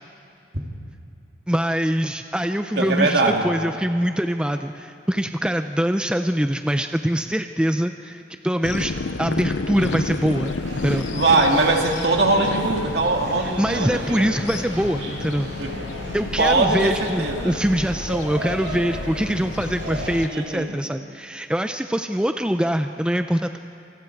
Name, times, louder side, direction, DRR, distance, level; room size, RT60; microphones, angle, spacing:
voice 1, 1.5-8.9 9.2-10.5 10.8-11.1 13.4-15.5 16.1-23.6, equal, 5° right, 7 dB, 0.5 m, -23 dB
voice 2, 2.8-3.5 11.1-14.3 15.6-15.8 16.4-17.6 20.3-20.8, right 2 dB, 60° right, 1 dB, 2.7 m, -21 dB
sound 1, 8.6-20.3, left 3 dB, 90° left, 0.7 m, -31 dB
sound 2, 9.7-20.2, right 1 dB, 90° right, 7.8 m, -37 dB
27.5 x 26.0 x 4.7 m, 2.8 s
head